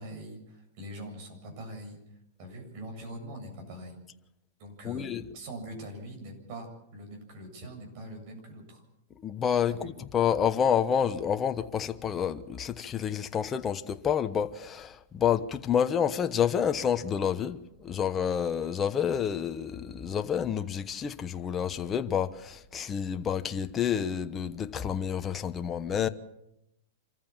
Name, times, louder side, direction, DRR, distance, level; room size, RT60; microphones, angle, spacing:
voice 1, 0.0-2.0 2.4-4.0 4.6-8.8 9.8-9.9, right 1 dB, 50° right, 7.8 m, -43 dB
voice 2, 4.8-5.2 9.2-26.1, left 8 dB, 20° left, 1.0 m, -29 dB
26.0 x 14.5 x 7.3 m
hypercardioid pair, 140°, 0 cm